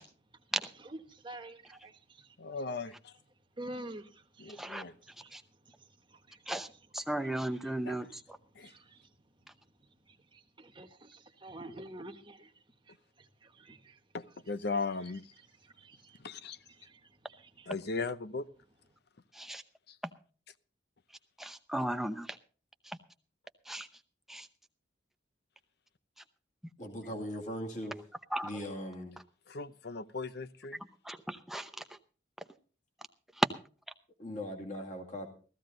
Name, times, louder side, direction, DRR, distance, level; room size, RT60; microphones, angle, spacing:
voice 1, 0.5-2.6 3.5-6.9 7.1-14.0 15.4-16.3 16.6-17.7, right 1 dB, 25° right, 1.3 m, -50 dB
voice 2, 2.4-3.1 4.4-4.9 7.9-8.0 8.6-8.7 14.1-15.2 16.2-16.6 17.7-18.5 19.9-20.0 29.5-30.8, left 4 dB, 60° left, 0.7 m, -37 dB
voice 3, 6.9-8.1 19.4-19.6 21.4-22.3 23.7-23.9 24.3-24.5 28.3-28.5 31.1-31.7 33.4-33.5, right 1 dB, ahead, 0.7 m, -34 dB
voice 4, 26.8-27.9 28.4-29.1 34.2-35.3, equal, 40° left, 2.2 m, -39 dB
15.0 x 14.5 x 3.8 m
head